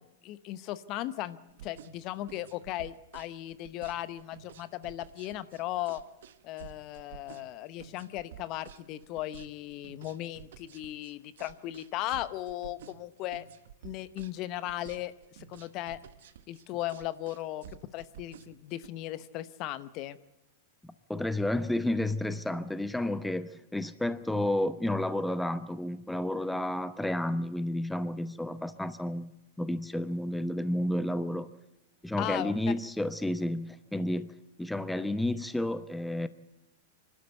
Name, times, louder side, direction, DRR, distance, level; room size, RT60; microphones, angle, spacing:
voice 1, 0.2-1.4 1.6-6.0 6.4-13.5 13.8-16.0 16.5-17.6 17.9-20.2 32.2-32.5, left 14 dB, 45° left, 15 dB, 0.9 m, -37 dB
sound 1, 1.5-18.9, right 10 dB, 65° right, 1.1 m, -51 dB
voice 2, 21.1-29.3 29.6-31.5 32.0-34.3 34.6-36.3, left 1 dB, 5° left, 13 dB, 0.8 m, -31 dB
26.0 x 12.5 x 8.1 m, 0.92 s
hypercardioid pair, 105°, 0 cm